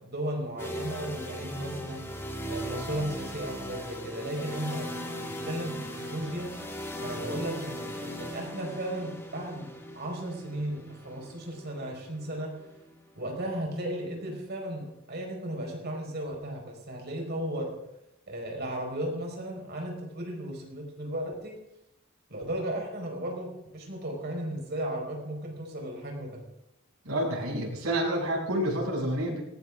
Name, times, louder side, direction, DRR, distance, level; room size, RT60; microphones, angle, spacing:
voice 1, 0.0-2.2 2.5-6.5 7.0-12.6 13.1-17.8 18.3-21.6 22.3-26.4, right 1 dB, 50° right, 1 dB, 4.9 m, -35 dB
sound 1, 0.6-14.4, equal, 10° left, 2.1 m, -39 dB
voice 2, 27.0-29.4, right 1 dB, 85° right, -3 dB, 7.0 m, -29 dB
18.5 x 18.0 x 3.7 m, 0.89 s
head